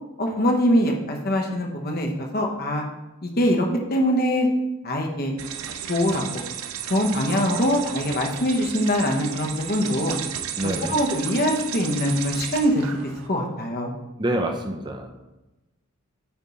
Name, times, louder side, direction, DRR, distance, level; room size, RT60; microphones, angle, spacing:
voice 1, 0.2-2.8 3.2-4.5 4.8-5.3 5.9-6.4 6.9-10.2 10.6-12.8 13.3-13.9, equal, 45° left, 1 dB, 1.0 m, -23 dB
sound 1, 5.4-13.3, right 9 dB, 85° right, 0.5 m, -34 dB
voice 2, 10.6-11.0 14.2-15.1, right 1 dB, 20° right, 3 dB, 0.6 m, -27 dB
9.0 x 3.5 x 4.0 m, 1.0 s
head